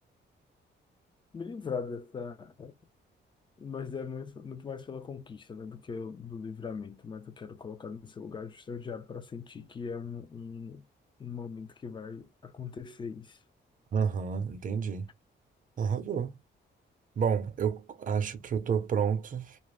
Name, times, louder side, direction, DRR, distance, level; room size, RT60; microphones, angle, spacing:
voice 1, 1.3-2.7 3.6-10.8 11.2-13.4, left 5 dB, 25° left, 0.5 m, -40 dB
voice 2, 13.9-15.1 15.8-16.4 17.2-19.6, right 7 dB, 45° right, 0.6 m, -30 dB
2.5 x 2.0 x 3.2 m
cardioid pair, 145°, 19 cm